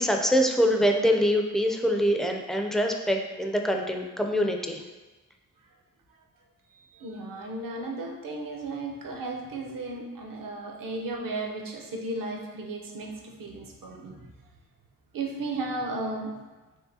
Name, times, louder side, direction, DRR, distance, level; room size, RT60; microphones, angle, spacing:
voice 1, 0.0-4.8, equal, ahead, 3 dB, 0.4 m, -24 dB
voice 2, 6.7-14.3 15.1-16.4, right 2 dB, 70° right, 0 dB, 0.8 m, -35 dB
4.8 x 3.2 x 2.8 m, 1.2 s
cardioid pair, 60°, 34 cm